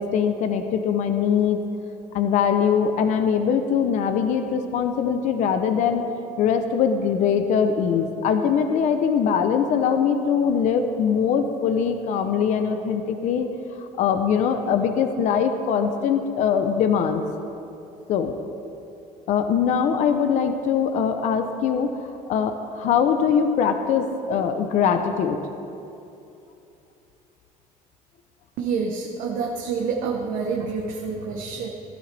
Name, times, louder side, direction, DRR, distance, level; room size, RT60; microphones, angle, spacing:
voice 1, 0.0-1.6 2.1-6.0 6.4-13.5 13.8-17.2 18.1-18.3 19.3-25.4, left 7 dB, 55° left, 7 dB, 0.8 m, -22 dB
voice 2, 28.6-31.7, right 5 dB, 70° right, 0 dB, 1.2 m, -27 dB
16.0 x 12.5 x 3.4 m, 2.7 s
cardioid pair, 165°, 14 cm